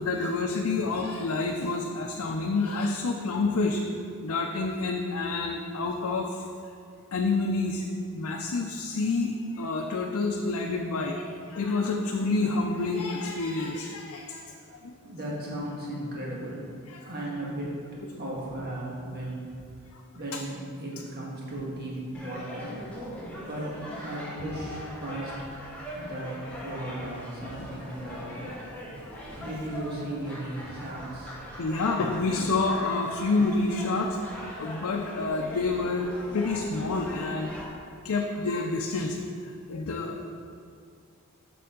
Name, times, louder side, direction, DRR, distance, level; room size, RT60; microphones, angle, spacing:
voice 1, 0.0-3.8 4.2-6.5 7.1-14.4 14.8-14.9 16.9-17.1 19.9-20.0 20.3-20.4 29.0-29.1 31.6-34.2 34.6-37.5 38.0-39.2 39.4-40.3, left 3 dB, 80° left, 1 dB, 0.5 m, -28 dB
voice 2, 15.0-16.6 17.0-17.7 18.2-19.4 20.1-22.8 23.4-23.7 24.0-25.3 25.9-26.3 26.6-28.5 29.4-31.3, right 1 dB, 45° right, -5 dB, 1.6 m, -36 dB
sound 1, 22.1-37.7, equal, 5° left, 1.1 m, -41 dB
6.9 x 6.2 x 3.8 m, 2.2 s
head